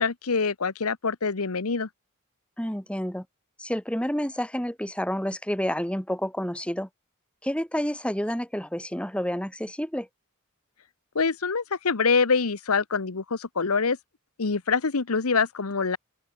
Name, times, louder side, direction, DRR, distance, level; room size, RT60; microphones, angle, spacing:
voice 1, 0.0-1.9 11.1-14.0 14.4-16.0, left 5 dB, 85° left, 1.0 m, -25 dB
voice 2, 2.6-3.3 3.6-6.9 7.4-10.1, equal, 5° left, 5.9 m, -29 dB
open air
head